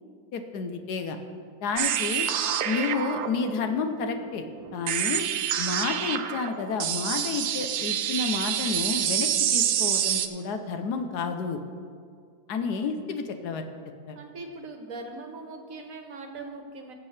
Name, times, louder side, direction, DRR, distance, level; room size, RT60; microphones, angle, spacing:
voice 1, 0.3-1.2 1.6-2.3 2.6-4.4 4.7-5.2 5.6-11.6 12.5-13.6 14.1-14.2, left 5 dB, 80° left, 6 dB, 1.3 m, -30 dB
sound 1, 1.8-10.3, right 10 dB, 80° right, 1.1 m, -27 dB
voice 2, 14.1-16.9, right 3 dB, 60° right, 4 dB, 1.4 m, -40 dB
18.0 x 7.4 x 3.3 m, 2.1 s
omnidirectional pair, 1.7 m